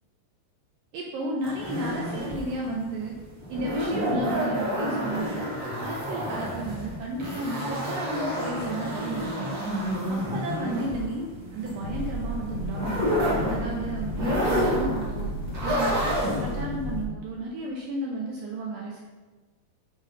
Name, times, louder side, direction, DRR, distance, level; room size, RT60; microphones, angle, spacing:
voice 1, 0.9-3.1 3.5-5.4 5.8-9.6 10.1-13.0 13.5-15.3 15.6-19.0, right 2 dB, 80° right, -1 dB, 2.1 m, -33 dB
sound 1, 1.4-16.6, equal, 65° right, 0.9 m, -29 dB
sound 2, 11.8-17.1, left 1 dB, 75° left, 2.7 m, -33 dB
6.3 x 5.2 x 3.9 m, 1.3 s
omnidirectional pair, 4.6 m